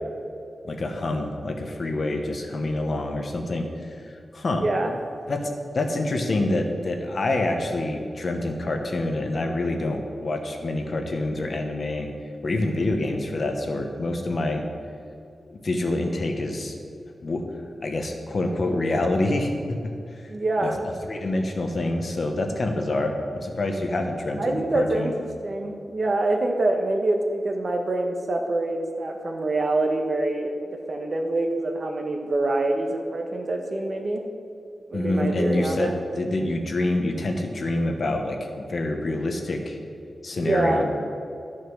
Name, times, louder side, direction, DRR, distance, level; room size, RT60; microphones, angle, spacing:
voice 1, 0.6-4.6 5.3-12.1 12.4-14.6 15.5-16.7 17.2-17.4 17.8-20.2 20.6-20.7 21.0-25.1 34.9-39.8 40.2-40.8, left 2 dB, 50° left, 4 dB, 1.1 m, -27 dB
voice 2, 4.6-5.0 20.3-20.8 24.4-25.1 25.4-34.2 34.9-36.0 40.3-40.8, right 2 dB, 45° right, 3 dB, 1.2 m, -25 dB
12.0 x 6.4 x 6.2 m, 2.6 s
wide cardioid pair, 130°, 0 cm